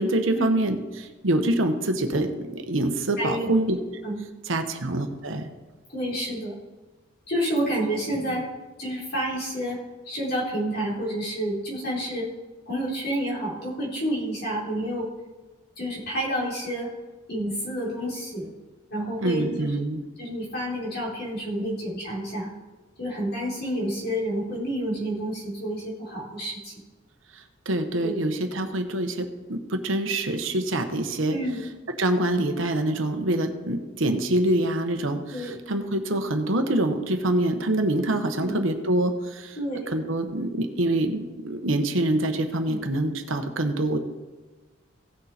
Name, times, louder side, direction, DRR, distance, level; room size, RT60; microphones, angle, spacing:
voice 1, 0.0-3.8 4.5-5.5 19.2-20.0 27.3-31.4 32.0-39.6 39.9-44.0, right 1 dB, 70° right, 6 dB, 1.1 m, -25 dB
voice 2, 3.2-3.6 4.0-4.2 5.9-6.6 7.3-8.5 8.8-9.8 10.1-12.3 12.7-15.1 15.8-16.9 17.3-18.5 18.9-19.9 20.2-22.5 23.0-26.7 28.0-28.2 31.3-31.7 35.3-35.6 38.3-38.6 39.6-40.0 42.6-42.8, equal, 50° left, -5 dB, 4.0 m, -29 dB
16.5 x 6.7 x 4.3 m, 1.2 s
head